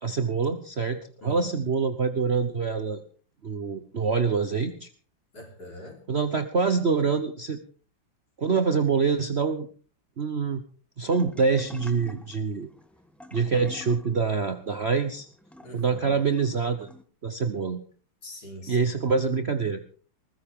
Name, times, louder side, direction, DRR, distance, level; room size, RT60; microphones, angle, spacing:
voice 1, 0.0-3.0 3.4-4.9 6.1-7.6 8.4-9.7 10.2-10.6 11.0-12.7 13.3-15.3 15.7-16.9 17.2-17.8 18.7-19.9, right 5 dB, 45° right, 8 dB, 1.0 m, -25 dB
voice 2, 1.2-1.5 5.3-6.0 15.6-16.2 18.2-18.9, equal, 55° left, 2 dB, 4.3 m, -43 dB
sound 1, 11.1-17.0, left 1 dB, ahead, 0.9 m, -48 dB
20.5 x 15.0 x 3.7 m, 0.40 s
omnidirectional pair, 2.1 m